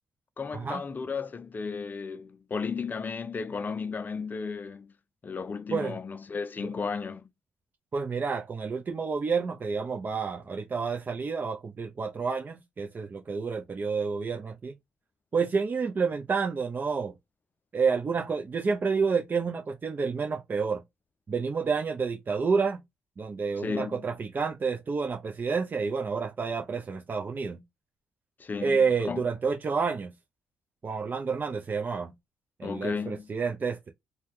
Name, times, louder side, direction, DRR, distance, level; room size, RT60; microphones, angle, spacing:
voice 1, 0.4-4.9 5.2-7.3 23.6-24.0 28.4-28.8 29.1-29.2 32.6-33.3, left 5 dB, 35° left, 0.5 m, -34 dB
voice 2, 7.9-14.7 15.3-17.1 17.7-20.8 21.3-22.8 23.2-27.6 28.6-30.1 30.8-32.1 32.6-33.8, right 5 dB, 40° right, 0.6 m, -29 dB
2.8 x 2.2 x 3.5 m
supercardioid pair, 55°, 5 cm